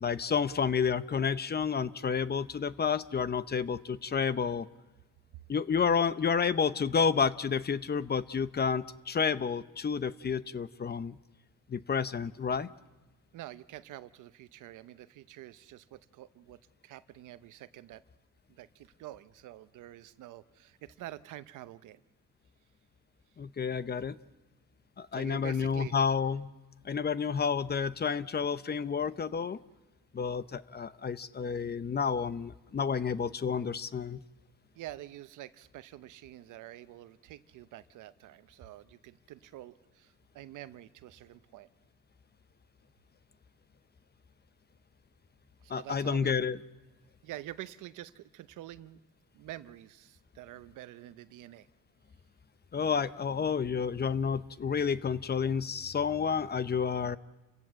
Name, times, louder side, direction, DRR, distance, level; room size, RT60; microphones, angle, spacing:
voice 1, 0.0-4.7 5.5-11.2 11.7-12.7 23.4-24.2 25.0-26.5 26.8-29.6 30.1-34.2 45.7-46.6 52.7-57.2, left 6 dB, 35° left, 15 dB, 0.8 m, -30 dB
voice 2, 13.3-18.0 18.5-22.0 25.1-26.0 34.7-41.7 45.6-46.4 47.2-49.0 49.3-51.7, right 14 dB, 85° right, 14 dB, 0.8 m, -47 dB
29.0 x 17.0 x 7.5 m, 1.1 s
cardioid pair, 90°, 30 cm